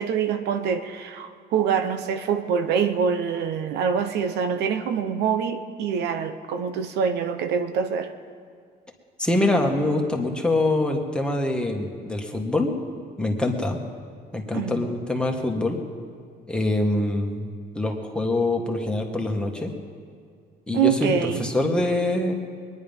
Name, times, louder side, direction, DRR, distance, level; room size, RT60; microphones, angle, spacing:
voice 1, 0.0-8.1 14.5-14.9 20.7-21.5, right 7 dB, 80° right, 8 dB, 0.9 m, -25 dB
voice 2, 9.2-12.7 13.2-13.8 14.3-15.8 16.5-17.5 17.8-19.7 20.7-22.3, left 2 dB, 5° left, 1 dB, 1.8 m, -24 dB
22.0 x 10.5 x 5.5 m, 2.2 s
cardioid pair, 110°, 17 cm